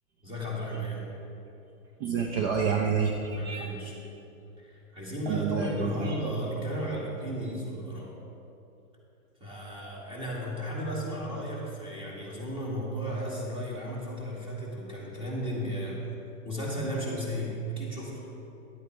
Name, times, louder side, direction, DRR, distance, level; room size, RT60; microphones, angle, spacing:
voice 1, 0.2-1.1 3.3-3.9 4.6-8.1 9.4-16.0 16.4-18.2, equal, 10° right, -4 dB, 2.0 m, -34 dB
voice 2, 2.0-3.7 5.3-6.2, right 5 dB, 45° right, 2 dB, 0.8 m, -28 dB
10.5 x 8.2 x 4.6 m, 2.9 s
supercardioid pair, 150°, 41 cm